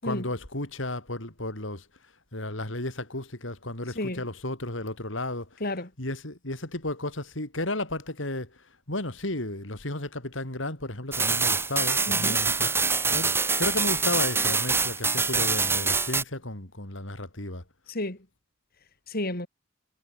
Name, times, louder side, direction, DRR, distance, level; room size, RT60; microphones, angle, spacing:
voice 1, 0.0-1.9 2.3-5.6 6.0-17.6, left 2 dB, 75° left, 4.7 m, -33 dB
sound 1, 11.1-16.2, right 4 dB, 10° right, 0.8 m, -25 dB
voice 2, 12.1-12.4 17.9-18.2 19.1-19.5, left 1 dB, 50° left, 5.3 m, -31 dB
head